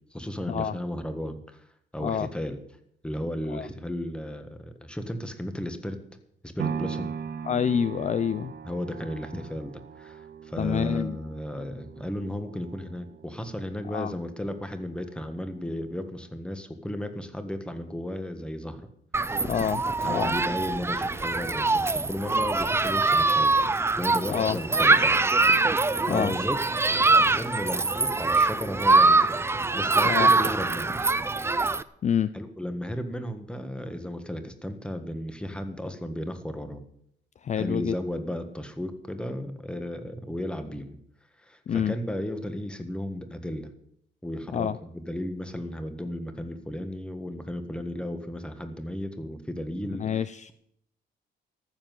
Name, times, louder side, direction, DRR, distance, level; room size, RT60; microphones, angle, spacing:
voice 1, 0.1-1.6 1.9-2.6 3.0-6.0 6.4-7.1 8.6-18.9 20.0-23.6 24.0-29.3 29.7-30.9 32.3-36.8 37.6-41.0 41.4-43.7 44.2-50.1, equal, 5° left, 8 dB, 1.5 m, -34 dB
sound 1, 6.6-14.7 15.2-15.3, right 7 dB, 60° right, 0.8 m, -39 dB
voice 2, 7.4-8.5 10.6-11.2 13.9-14.1 19.4-19.8 20.1-20.3 24.3-24.6 26.1-26.4 30.0-30.3 32.0-32.3 37.4-37.9 41.7-42.0 44.5-44.8 49.9-50.5, left 8 dB, 40° left, 14 dB, 0.5 m, -27 dB
Human group actions, 19.1-31.8, right 3 dB, 15° right, 0.5 m, -23 dB
14.0 x 7.4 x 9.5 m, 0.73 s
cardioid pair, 140°, 19 cm